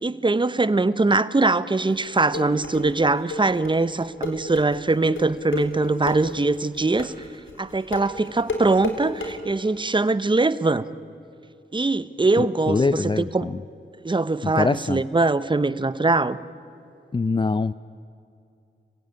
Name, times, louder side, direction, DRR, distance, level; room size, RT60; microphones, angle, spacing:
voice 1, 0.0-7.1 7.6-10.8 11.7-13.5 14.0-16.4, right 3 dB, 25° right, 15 dB, 0.9 m, -22 dB
sound 1, 1.9-9.3, left 3 dB, 80° left, 4.0 m, -31 dB
voice 2, 12.4-13.6 14.4-15.0 17.1-17.7, left 3 dB, 25° left, 14 dB, 0.5 m, -24 dB
25.5 x 16.0 x 9.6 m, 2.6 s
cardioid pair, 60°, 20 cm